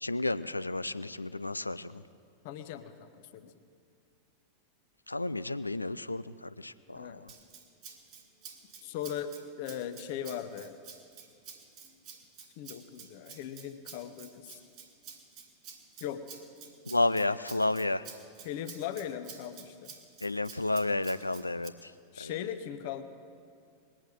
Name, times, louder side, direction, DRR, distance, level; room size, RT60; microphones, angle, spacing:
voice 1, 0.0-2.0 5.1-7.3 16.9-18.1 20.2-21.9 22.2-22.4, left 2 dB, 85° left, 15 dB, 0.4 m, -31 dB
voice 2, 2.4-3.5 6.9-7.2 8.8-10.7 12.6-14.6 16.0-16.3 18.4-19.9 22.1-23.0, left 9 dB, 50° left, 10 dB, 0.9 m, -39 dB
Rattle (instrument), 7.3-21.7, right 7 dB, 40° right, 1.6 m, -50 dB
20.0 x 9.0 x 6.5 m, 2.4 s
figure-of-eight pair, 90°, 0 cm